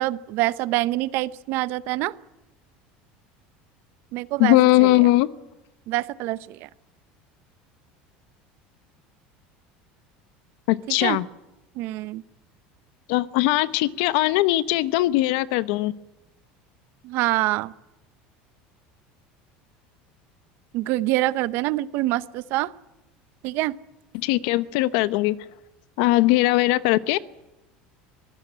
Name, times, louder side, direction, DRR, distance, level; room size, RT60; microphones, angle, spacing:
voice 1, 0.0-2.1 4.1-4.9 5.9-6.7 11.0-11.2 11.8-12.2 17.0-17.7 20.7-22.7 23.4-23.8, right 17 dB, 60° right, 17 dB, 0.8 m, -25 dB
voice 2, 4.4-5.3 10.7-11.3 13.1-15.9 24.1-25.4 26.0-27.2, left 18 dB, 75° left, 15 dB, 0.9 m, -20 dB
24.0 x 15.5 x 8.8 m, 1.0 s
supercardioid pair, 130°, 4 cm